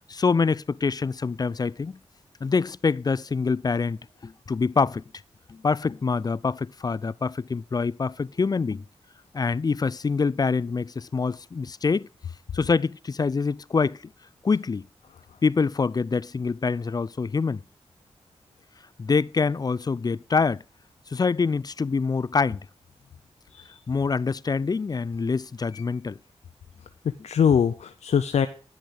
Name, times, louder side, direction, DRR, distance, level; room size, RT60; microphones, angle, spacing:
voice 1, 0.1-2.0 2.4-5.0 5.5-8.8 9.3-12.1 12.5-14.0 14.4-14.9 15.4-17.6 19.0-20.6 21.1-22.6 23.9-26.2, left 4 dB, 35° left, 0.4 m, -25 dB
voice 2, 27.0-28.5, left 7 dB, 90° left, 0.6 m, -23 dB
10.5 x 6.5 x 6.1 m
cardioid pair, 65°, 11 cm